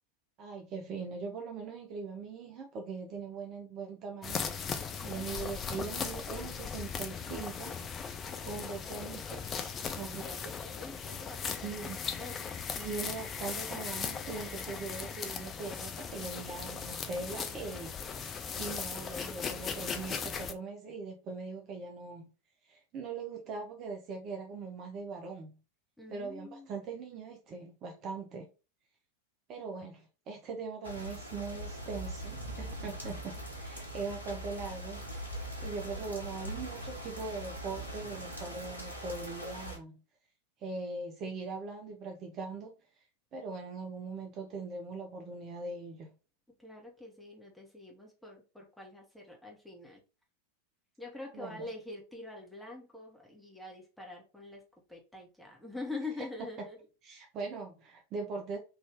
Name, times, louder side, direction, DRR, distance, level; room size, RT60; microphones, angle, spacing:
voice 1, 0.4-7.7 8.4-9.7 10.0-10.5 11.6-12.0 12.8-22.3 22.6-25.5 26.1-28.5 29.5-35.3 35.6-39.9 40.6-42.7 43.3-46.1 51.3-51.7 57.0-58.6, right 4 dB, 35° right, 0.6 m, -41 dB
sound 1, 4.2-20.5, left 6 dB, 25° left, 0.5 m, -38 dB
voice 2, 8.3-11.8 12.2-12.4 26.0-26.8 46.6-50.0 51.0-54.6 54.9-56.8, left 2 dB, ahead, 1.1 m, -45 dB
sound 2, 30.8-39.8, right 1 dB, 85° right, 1.0 m, -41 dB
3.4 x 2.6 x 3.3 m
figure-of-eight pair, 90°, 0 cm